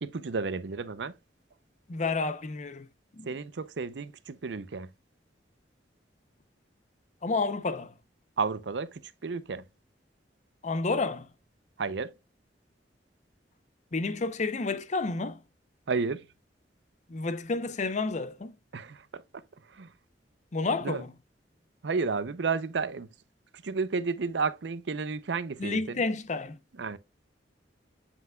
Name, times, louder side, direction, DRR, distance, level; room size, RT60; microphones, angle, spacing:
voice 1, 0.0-1.1 3.2-4.9 8.4-9.7 11.8-12.1 15.9-16.3 18.7-19.4 19.7-19.9 20.8-21.0 21.8-23.1 23.6-26.0 26.8-27.0, right 4 dB, 75° right, 0.6 m, -32 dB
voice 2, 1.9-2.9 3.1-3.3 7.2-7.9 10.6-11.3 13.9-15.4 17.1-18.5 20.5-21.1 25.6-26.6, left 3 dB, 40° left, 0.6 m, -30 dB
7.8 x 5.7 x 2.2 m
head